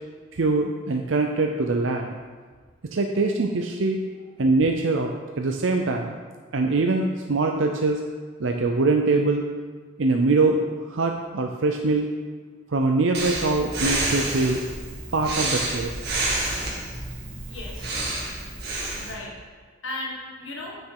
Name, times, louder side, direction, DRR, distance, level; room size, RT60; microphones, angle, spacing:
voice 1, 0.3-2.1 2.9-4.0 4.4-6.2 6.5-8.0 8.4-9.5 10.0-12.1 12.7-14.6 15.1-16.0, right 3 dB, 75° right, 3 dB, 0.6 m, -23 dB
Breathing, 13.1-19.1, right 2 dB, 55° right, 1.9 m, -29 dB
voice 2, 17.4-18.6 19.0-19.5 19.8-20.8, left 2 dB, 75° left, -2 dB, 1.6 m, -37 dB
8.9 x 6.3 x 4.8 m, 1.5 s
head